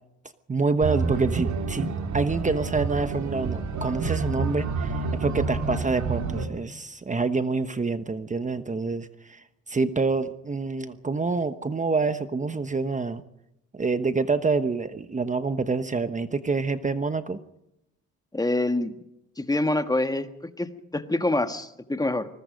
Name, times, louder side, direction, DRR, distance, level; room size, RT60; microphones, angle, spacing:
voice 1, 0.5-13.2 13.7-17.4, right 4 dB, 25° right, 10 dB, 1.1 m, -27 dB
sound 1, 0.8-6.5, right 4 dB, 70° right, 2.8 m, -29 dB
voice 2, 18.3-18.9 19.4-20.3 20.6-22.3, left 2 dB, 10° left, 8 dB, 1.5 m, -26 dB
24.5 x 20.5 x 5.2 m, 0.85 s
cardioid pair, 90°, 30 cm